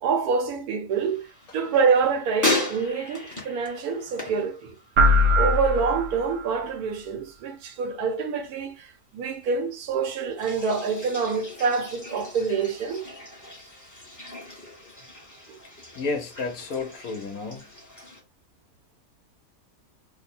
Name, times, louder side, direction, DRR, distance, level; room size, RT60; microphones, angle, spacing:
voice 1, 0.0-4.8 5.4-13.0, right 5 dB, 80° right, 1.3 m, -26 dB
sound 1, 0.9-5.3 5.6-6.2 10.3-18.2, left 2 dB, 15° left, 0.8 m, -36 dB
sound 2, 5.0-6.5, left 1 dB, 65° right, 0.8 m, -21 dB
voice 2, 15.9-17.7, left 3 dB, 75° left, 1.3 m, -31 dB
3.1 x 2.1 x 4.1 m
omnidirectional pair, 1.6 m